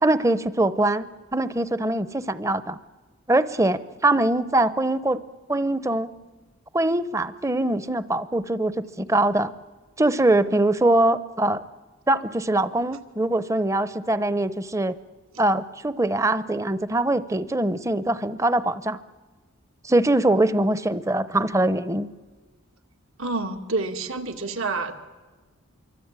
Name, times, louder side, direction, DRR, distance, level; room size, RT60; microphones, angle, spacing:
voice 1, 0.0-2.8 3.3-5.2 5.5-6.1 6.7-9.5 10.0-11.6 12.1-15.0 15.4-19.0 19.8-22.1, right 2 dB, 15° right, 14 dB, 0.8 m, -22 dB
voice 2, 23.2-25.0, right 3 dB, 75° right, 6 dB, 2.2 m, -28 dB
26.5 x 24.0 x 8.9 m, 1.3 s
head